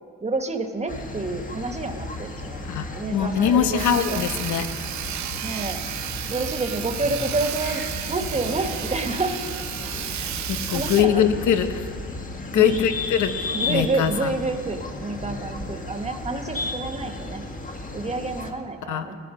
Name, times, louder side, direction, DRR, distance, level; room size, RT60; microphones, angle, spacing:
voice 1, 0.2-2.6 2.9-4.2 5.4-5.8 6.3-9.4 9.8-10.2 10.7-11.2 12.5-12.8 13.5-17.4 17.9-19.2, right 3 dB, 20° right, 5 dB, 1.6 m, -29 dB
sound 1, 0.9-18.5, left 2 dB, 25° left, 1.9 m, -34 dB
voice 2, 2.7-4.7 10.5-11.9 12.5-14.3 18.9-19.1, left 8 dB, 75° left, 9 dB, 1.1 m, -22 dB
Sawing, 3.8-11.0, right 10 dB, 70° right, 0.9 m, -32 dB
18.0 x 12.5 x 5.2 m, 2.1 s
cardioid pair, 90°, 30 cm